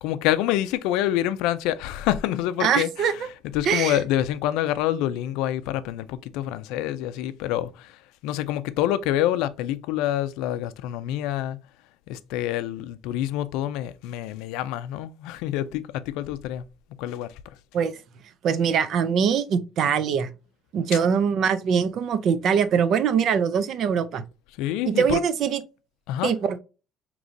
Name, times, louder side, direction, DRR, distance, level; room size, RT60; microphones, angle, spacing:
voice 1, 0.0-11.6 12.1-16.6 17.0-17.6 20.9-21.0 24.6-25.2 26.1-26.3, left 12 dB, 85° left, 0.3 m, -27 dB
voice 2, 2.6-3.1 3.7-4.0 17.7-18.0 18.4-20.3 20.7-24.2 24.9-25.6 26.2-26.6, right 7 dB, 50° right, 0.4 m, -22 dB
4.9 x 3.0 x 2.6 m
cardioid pair, 155°, 0 cm